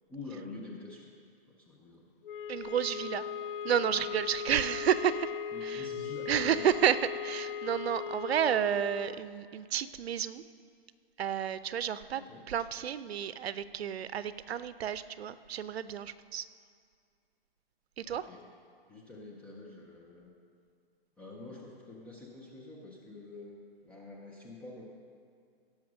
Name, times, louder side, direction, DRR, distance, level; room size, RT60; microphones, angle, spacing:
voice 1, 0.1-1.1 1.5-2.1 5.5-6.7 12.1-12.4 18.0-18.4 18.9-20.3 21.2-23.6 23.8-24.9, left 3 dB, 5° left, -4 dB, 0.4 m, -47 dB
sound 1, 2.2-9.2, left 7 dB, 60° left, 0.5 m, -38 dB
voice 2, 2.5-3.3 3.6-5.3 5.6-5.9 6.3-10.4 11.2-16.5 18.0-18.2, right 9 dB, 85° right, 15 dB, 0.6 m, -31 dB
17.0 x 5.8 x 6.1 m, 2.2 s
hypercardioid pair, 155°, 30 cm